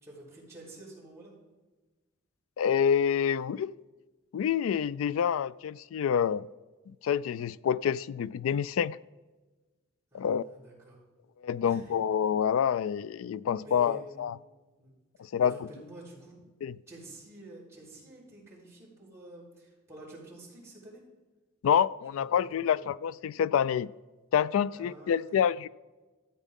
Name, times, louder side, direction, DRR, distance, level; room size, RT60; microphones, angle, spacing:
voice 1, 0.0-1.3 10.1-11.0 11.6-12.0 13.6-14.3 14.8-16.4 16.9-21.0 22.1-22.4 22.7-22.8 24.7-25.4, right 1 dB, 15° right, -8 dB, 3.9 m, -48 dB
voice 2, 2.6-3.8 4.3-6.5 7.0-9.0 10.1-10.4 11.4-14.3 15.3-15.5 16.6-16.7 21.6-23.9 24.3-25.7, left 8 dB, 85° left, 20 dB, 0.3 m, -27 dB
13.5 x 8.2 x 3.6 m, 1.2 s
head